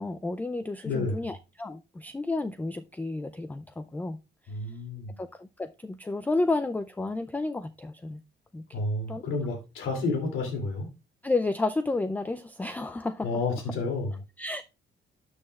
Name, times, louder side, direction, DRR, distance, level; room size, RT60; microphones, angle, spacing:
voice 1, 0.0-4.2 5.2-8.2 8.5-8.8 9.1-9.2 11.2-13.3 14.4-14.6, left 2 dB, 10° left, 11 dB, 0.3 m, -31 dB
voice 2, 0.8-1.3 4.5-5.2 8.7-10.9 13.2-14.2, left 3 dB, 85° left, 1 dB, 2.6 m, -30 dB
12.0 x 6.4 x 2.3 m, 0.28 s
cardioid pair, 130°, 20 cm